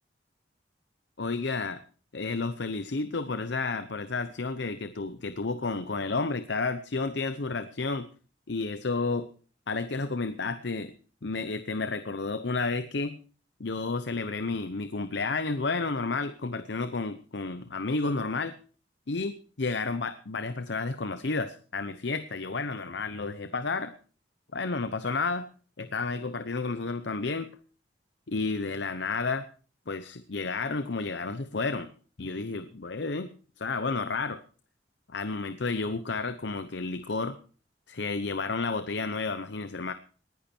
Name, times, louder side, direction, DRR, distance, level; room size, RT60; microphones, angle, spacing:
voice 1, 1.2-1.8 2.1-8.1 8.5-9.3 9.7-10.9 11.2-13.2 13.6-18.6 19.1-23.9 24.5-25.5 25.8-27.5 28.3-29.4 29.9-31.9 32.2-33.3 33.6-34.4 35.1-37.4 37.9-39.9, left 3 dB, 70° left, 12 dB, 0.8 m, -31 dB
19.0 x 10.5 x 4.4 m, 0.41 s
head